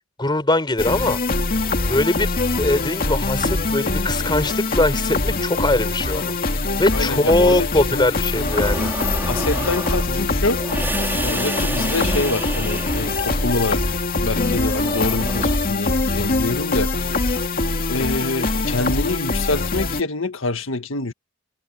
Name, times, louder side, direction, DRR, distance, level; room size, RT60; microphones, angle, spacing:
voice 1, 0.2-1.2 1.9-6.4 6.8-8.9, left 2 dB, 25° left, 4.2 m, -21 dB
sound 1, 0.8-20.0, left 3 dB, 50° left, 2.4 m, -23 dB
voice 2, 6.9-7.7 9.3-10.6 11.2-13.8 14.2-17.3 17.9-21.1, left 2 dB, 85° left, 1.8 m, -26 dB
sound 2, 7.7-15.6, right 1 dB, 10° right, 4.9 m, -30 dB
head